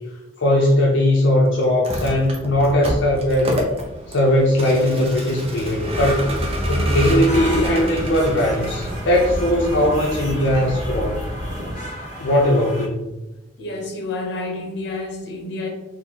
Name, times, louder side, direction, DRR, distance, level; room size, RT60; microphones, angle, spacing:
voice 1, 0.4-3.6 4.1-6.3 6.7-11.3 12.2-13.1, left 1 dB, 85° left, -2 dB, 0.5 m, -19 dB
Vehicle, 1.7-11.1, equal, 30° right, 0.6 m, -28 dB
sound 1, 5.8-11.8, equal, 75° right, 1.0 m, -31 dB
sound 2, 7.3-12.9, equal, 45° left, 1.3 m, -33 dB
voice 2, 13.6-15.7, left 2 dB, 65° left, 1 dB, 0.9 m, -29 dB
3.8 x 2.5 x 2.9 m, 1.0 s
head